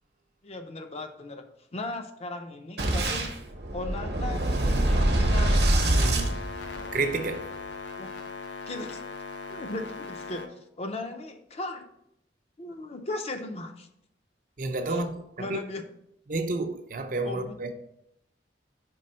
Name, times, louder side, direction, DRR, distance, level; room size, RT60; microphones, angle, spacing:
voice 1, 0.4-1.4 1.7-3.3 3.7-5.6 8.0-8.1 8.7-9.0 9.5-11.8 12.6-13.9 14.8-15.0 15.4-15.8 17.2-17.6, left 2 dB, 35° left, 0.5 m, -37 dB
Boom, 2.8-7.2, right 1 dB, 65° right, 0.9 m, -25 dB
sound 1, 5.2-10.5, left 4 dB, 75° left, 0.7 m, -39 dB
voice 2, 5.8-6.4 6.9-7.5 14.6-15.6 16.3-17.7, right 3 dB, 45° right, 0.5 m, -30 dB
5.3 x 3.4 x 5.4 m
head